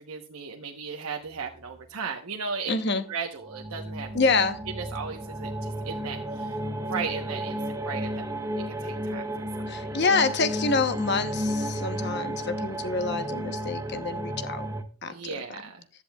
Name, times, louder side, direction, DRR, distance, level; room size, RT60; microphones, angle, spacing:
voice 1, 0.0-2.7 3.1-4.3 4.7-6.6 6.9-9.3 9.6-9.8 15.0-15.8, right 5 dB, 80° right, 1.0 m, -36 dB
voice 2, 2.7-3.0 4.1-4.6 9.7-14.7 15.0-15.1, left 4 dB, 50° left, 0.9 m, -26 dB
sound 1, 3.4-14.8, right 1 dB, 15° right, 0.6 m, -33 dB
15.5 x 11.0 x 2.3 m
head